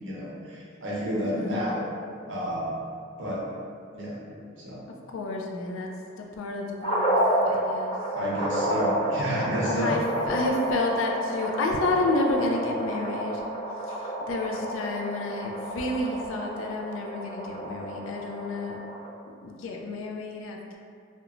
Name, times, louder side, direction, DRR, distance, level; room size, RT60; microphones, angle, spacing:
voice 1, 0.0-1.8 2.3-2.8 3.2-3.5 3.9-4.8 8.1-10.0, equal, 65° right, -5 dB, 0.6 m, -30 dB
voice 2, 1.2-1.6 5.1-5.9 6.2-7.2 7.5-7.9 9.6-10.0 10.3-13.4 14.3-18.8 19.4-20.8, left 2 dB, 80° left, 1 dB, 0.3 m, -30 dB
sound 1, 6.8-19.1, right 1 dB, 30° left, 1.0 m, -30 dB
2.9 x 2.1 x 2.4 m, 2.3 s
head